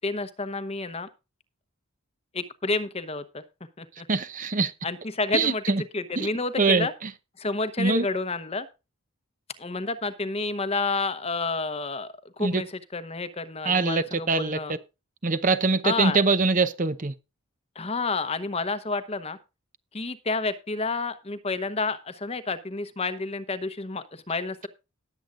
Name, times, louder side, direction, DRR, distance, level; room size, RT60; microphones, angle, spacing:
voice 1, 0.0-1.1 2.3-3.4 3.8-4.1 4.8-5.6 5.9-6.9 7.4-8.7 9.6-12.1 12.4-14.8 15.8-16.2 17.7-19.4 19.9-24.7, left 3 dB, 25° left, 0.9 m, -30 dB
voice 2, 4.1-4.7 5.3-5.8 6.2-6.3 6.6-7.1 7.8-8.1 12.4-12.6 13.6-14.6 15.2-17.1, right 4 dB, 35° right, 0.7 m, -23 dB
19.0 x 8.0 x 2.5 m
head